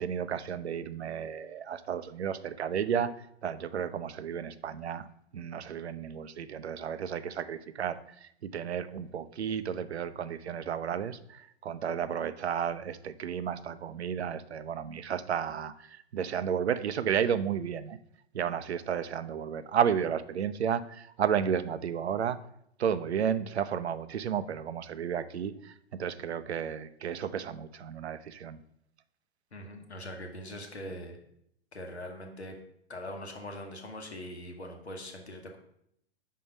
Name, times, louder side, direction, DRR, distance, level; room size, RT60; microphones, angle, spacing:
voice 1, 0.0-5.1 5.3-18.0 18.3-22.4 22.8-28.6, right 8 dB, 80° right, 13 dB, 0.5 m, -32 dB
voice 2, 29.5-31.2 31.7-32.5 32.9-35.6, left 1 dB, 85° left, 3 dB, 1.2 m, -42 dB
5.6 x 4.2 x 4.9 m, 0.73 s
figure-of-eight pair, 105°, 32 cm